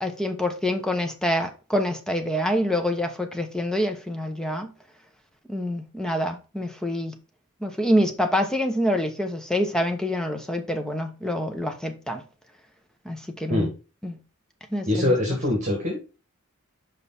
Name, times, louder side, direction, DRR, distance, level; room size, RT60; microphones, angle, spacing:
voice 1, 0.0-4.7 5.5-7.1 7.6-12.2 13.0-13.7 14.0-14.2 14.7-15.1, equal, 5° left, 0.9 m, -26 dB
voice 2, 14.9-16.0, left 1 dB, 35° right, 2.1 m, -23 dB
5.6 x 5.2 x 4.2 m
head